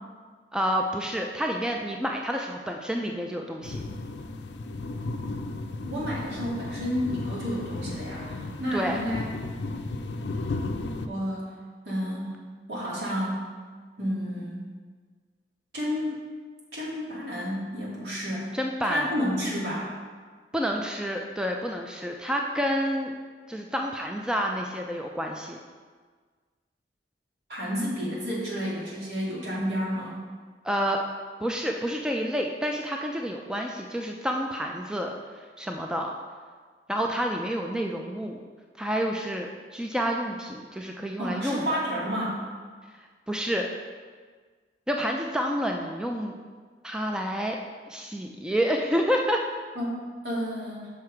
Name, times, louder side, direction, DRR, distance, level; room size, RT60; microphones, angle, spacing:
voice 1, 0.5-3.8 8.7-9.0 18.5-19.1 20.5-23.1 23.5-25.6 30.6-31.0 31.4-35.1 35.6-36.1 36.9-38.4 38.8-41.8 43.3-43.7 44.9-46.4 46.8-47.6 47.9-49.4, equal, 5° right, 1 dB, 0.4 m, -29 dB
sound 1, 3.6-11.1, left 2 dB, 70° left, 0.5 m, -34 dB
voice 2, 5.8-9.3 11.1-11.6 11.9-12.4 12.7-13.5 14.0-14.6 15.7-16.2 16.7-18.5 18.8-19.9 27.5-30.2 41.2-42.4 49.8-50.9, equal, 70° right, -5 dB, 2.2 m, -30 dB
6.1 x 5.6 x 4.8 m, 1.5 s
head